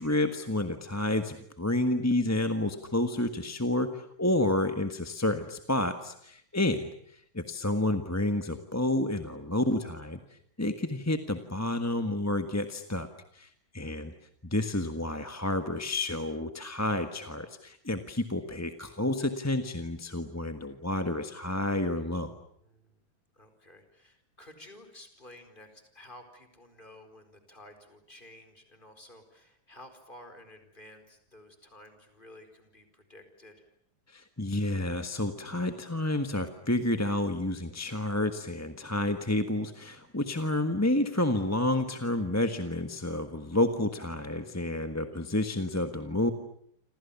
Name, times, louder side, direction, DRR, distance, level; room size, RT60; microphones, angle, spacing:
voice 1, 0.0-10.2 10.6-13.1 13.3-14.1 14.4-22.3 34.1-46.3, left 1 dB, 10° left, 7 dB, 1.2 m, -30 dB
voice 2, 13.8-14.1 22.6-23.0 23.3-33.6, left 1 dB, 25° left, 8 dB, 4.7 m, -53 dB
28.5 x 26.5 x 7.1 m, 0.68 s
omnidirectional pair, 2.1 m